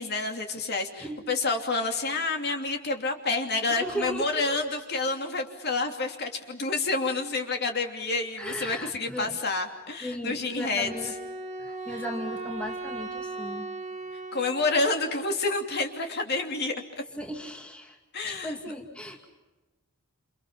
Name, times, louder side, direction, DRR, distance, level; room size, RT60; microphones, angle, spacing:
voice 1, 0.0-10.9 14.3-16.8 18.1-18.6, left 3 dB, 45° left, 4 dB, 2.9 m, -29 dB
voice 2, 3.7-4.7 8.4-9.4 10.0-11.1 11.6-13.7 17.2-18.0 18.3-19.3, equal, 5° left, 2 dB, 2.3 m, -36 dB
Wind instrument woodwind instrument, 10.8-15.1, right 3 dB, 30° right, 2.0 m, -37 dB
29.0 x 28.5 x 5.8 m, 1.1 s
head